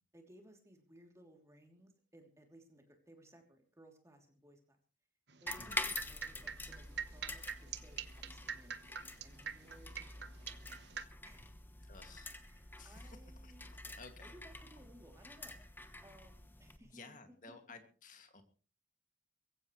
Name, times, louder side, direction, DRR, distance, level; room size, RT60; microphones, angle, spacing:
voice 1, 0.1-4.8 5.4-8.8 9.2-10.5 11.2-11.5 12.4-13.7 14.2-17.0, right 1 dB, 15° right, 3 dB, 3.1 m, -61 dB
sound 1, 5.3-11.0, right 7 dB, 60° right, 1.1 m, -44 dB
sound 2, 5.5-16.8, left 2 dB, 10° left, 1.1 m, -47 dB
voice 2, 11.9-12.3 12.8-14.4 16.8-18.4, left 3 dB, 45° left, 6 dB, 2.4 m, -56 dB
22.0 x 15.5 x 3.2 m, 0.38 s
head